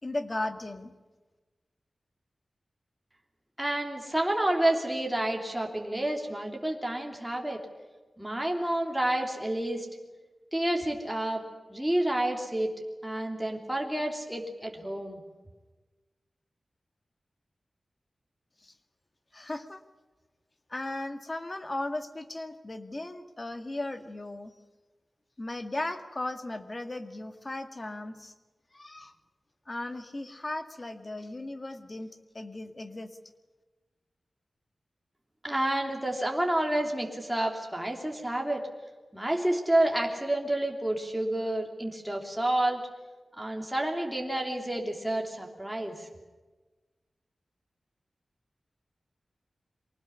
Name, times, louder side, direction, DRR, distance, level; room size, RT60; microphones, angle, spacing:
voice 1, 0.0-0.9 18.6-18.8 19.3-19.8 20.7-24.5 25.4-28.3 28.7-29.1 29.7-33.2, left 2 dB, 30° left, 8 dB, 2.0 m, -36 dB
voice 2, 3.6-7.6 8.2-9.9 10.5-11.4 11.7-12.7 13.0-15.2 35.4-38.6 39.1-42.8 43.4-46.1, right 1 dB, 5° right, 1 dB, 3.2 m, -29 dB
24.5 x 19.0 x 9.8 m, 1.2 s
wide cardioid pair, 115°, 0 cm